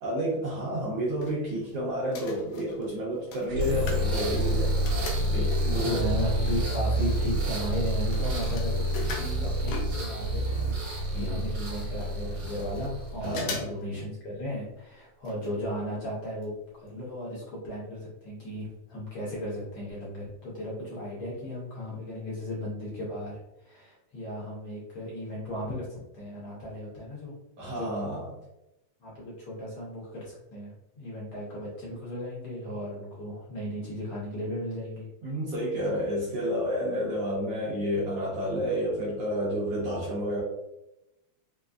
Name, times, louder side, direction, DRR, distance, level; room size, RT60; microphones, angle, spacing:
voice 1, 0.0-4.8 5.3-6.1 11.1-11.5 13.2-13.7 27.6-28.3 35.2-40.4, equal, 75° right, -5 dB, 1.5 m, -30 dB
sound 1, 0.8-1.7 2.0-5.9 6.5-6.6 6.8-10.4 10.7-10.8 11.0-11.1 11.7-11.8 12.0-12.9 13.2-13.8 14.2-14.3 15.2-15.5 15.8-15.9 16.4-16.5 16.9-17.0, left 4 dB, 80° left, 1.4 m, -41 dB
sound 2, 3.5-13.5, right 1 dB, 55° right, 1.4 m, -28 dB
voice 2, 5.8-10.8 11.1-27.3 27.7-28.0 29.0-35.1, left 1 dB, 65° left, -6 dB, 1.6 m, -36 dB
5.1 x 2.0 x 2.3 m, 0.91 s
omnidirectional pair, 3.4 m